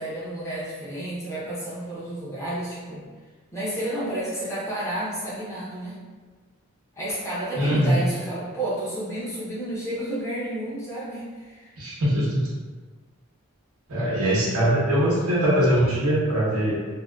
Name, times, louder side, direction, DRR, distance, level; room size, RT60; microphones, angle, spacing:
voice 1, 0.0-3.1 3.5-5.9 6.9-11.7, right 1 dB, 15° left, -9 dB, 0.6 m, -31 dB
voice 2, 7.5-8.0 11.8-12.5 13.9-16.8, right 1 dB, 90° right, -7 dB, 0.8 m, -22 dB
2.5 x 2.2 x 2.2 m, 1.4 s
head